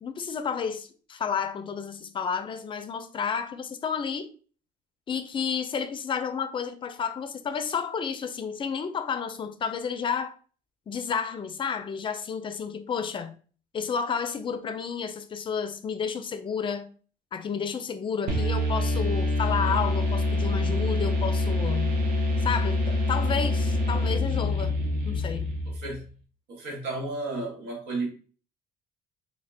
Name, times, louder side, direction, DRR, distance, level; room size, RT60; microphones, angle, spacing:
voice 1, 0.0-4.3 5.1-10.3 10.9-13.4 13.7-16.9 17.3-22.0 22.4-24.8 25.0-25.6, left 6 dB, 30° left, 0.4 m, -31 dB
sound 1, 18.3-26.0, left 2 dB, 60° right, 1.0 m, -26 dB
voice 2, 25.7-26.0 26.5-28.1, right 2 dB, 75° right, 1.1 m, -32 dB
3.5 x 2.2 x 3.3 m
cardioid pair, 110°, 17 cm